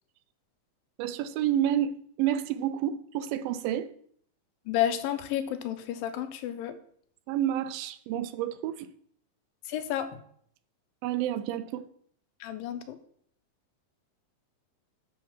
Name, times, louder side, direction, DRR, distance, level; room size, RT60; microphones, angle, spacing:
voice 1, 1.0-3.9 7.3-8.9 11.0-11.9, right 11 dB, 85° right, 12 dB, 2.4 m, -29 dB
voice 2, 4.7-6.8 9.7-10.2 12.4-13.0, left 11 dB, 85° left, 10 dB, 2.3 m, -31 dB
11.5 x 3.9 x 5.8 m, 0.64 s
omnidirectional pair, 4.1 m